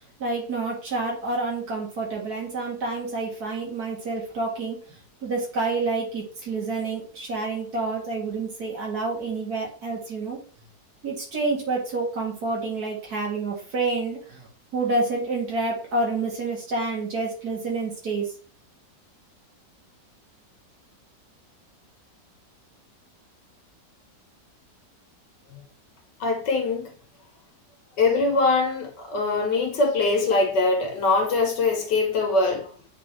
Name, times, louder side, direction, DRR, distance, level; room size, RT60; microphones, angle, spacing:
voice 1, 0.2-10.4 11.0-14.5 14.7-18.3, right 3 dB, 60° right, 2.5 m, -28 dB
voice 2, 26.2-26.9 28.0-32.7, left 3 dB, 75° left, 2.1 m, -22 dB
8.2 x 3.8 x 3.3 m
omnidirectional pair, 1.9 m